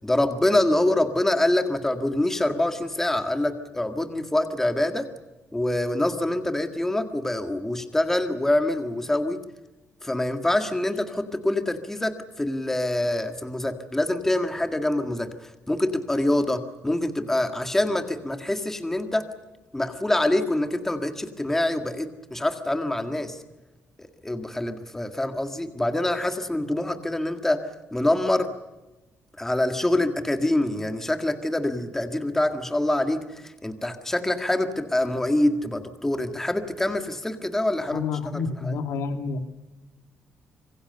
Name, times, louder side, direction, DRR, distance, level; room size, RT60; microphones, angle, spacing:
voice 1, 0.0-5.1 5.5-9.4 10.0-19.3 19.7-23.4 24.0-28.5 29.4-38.8, left 1 dB, 10° left, 7 dB, 1.8 m, -25 dB
voice 2, 37.9-39.4, left 4 dB, 75° left, 6 dB, 2.9 m, -29 dB
26.0 x 23.0 x 6.8 m, 1.1 s
cardioid pair, 165°, 5 cm